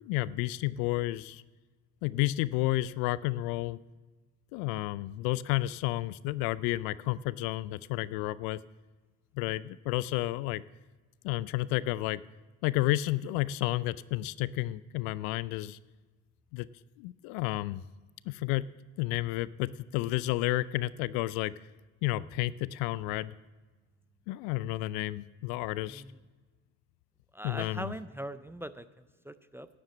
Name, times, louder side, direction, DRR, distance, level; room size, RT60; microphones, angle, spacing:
voice 1, 0.0-1.4 2.0-3.8 4.5-8.6 9.3-10.6 11.2-12.2 12.6-15.8 16.5-16.7 17.0-17.8 18.3-18.7 19.0-21.5 22.0-23.3 24.3-26.0 27.4-27.9, left 17 dB, 65° left, 19 dB, 0.5 m, -31 dB
voice 2, 25.8-26.2 27.3-29.7, right 1 dB, 5° right, 13 dB, 0.5 m, -41 dB
11.0 x 7.5 x 7.3 m, 1.3 s
hypercardioid pair, 55°, 39 cm